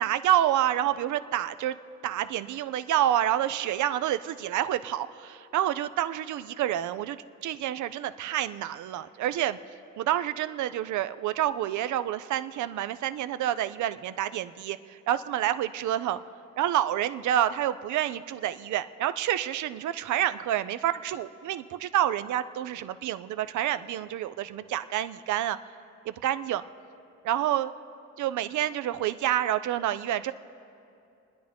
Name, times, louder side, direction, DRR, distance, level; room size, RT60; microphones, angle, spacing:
voice 1, 0.0-1.8 2.0-9.6 10.0-16.2 16.6-25.6 26.1-26.6 27.2-27.7 28.2-30.3, right 12 dB, 75° right, 13 dB, 0.6 m, -28 dB
29.5 x 10.0 x 3.5 m, 2.6 s
cardioid pair, 90°, 30 cm